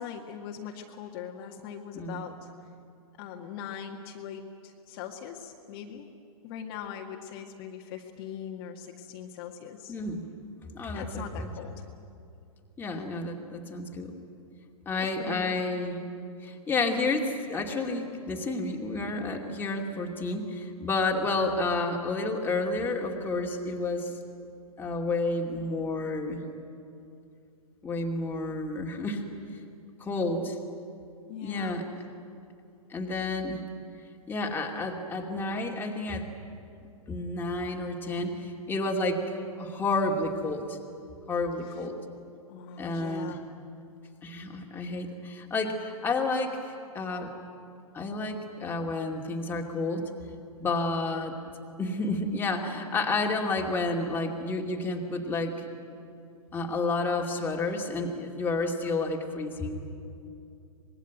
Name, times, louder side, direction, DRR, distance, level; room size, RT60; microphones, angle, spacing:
voice 1, 0.0-2.5 3.2-6.1 6.4-10.0 10.9-11.8 12.9-13.1 14.9-15.7 30.3-30.5 31.3-31.8 42.5-43.4, left 8 dB, 40° left, 1 dB, 1.9 m, -41 dB
voice 2, 9.9-10.2 10.7-11.5 12.8-14.1 14.9-16.0 16.4-24.1 24.8-26.4 27.8-29.2 30.0-30.5 31.4-31.8 32.9-33.6 34.3-36.3 37.1-38.3 38.7-39.2 39.6-40.8 41.3-41.9 42.8-43.4 44.2-47.3 47.9-50.1 50.6-51.4 51.8-55.5 56.5-59.9, left 2 dB, 10° left, 0 dB, 2.5 m, -30 dB
25.0 x 21.0 x 9.3 m, 2.6 s
hypercardioid pair, 125°, 19 cm